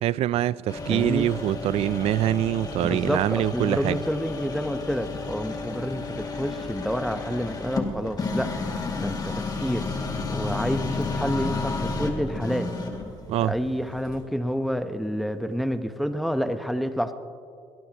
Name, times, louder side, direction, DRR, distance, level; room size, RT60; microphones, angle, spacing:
voice 1, 0.0-4.0 13.3-13.5, right 13 dB, 70° right, 0.4 m, -24 dB
sound 1, 0.7-14.2, left 3 dB, 35° left, 2.2 m, -32 dB
voice 2, 0.9-1.3 2.8-8.5 9.0-9.9 10.3-12.7 13.4-17.1, equal, ahead, 0.9 m, -29 dB
23.0 x 18.0 x 2.9 m
cardioid pair, 100°, 11 cm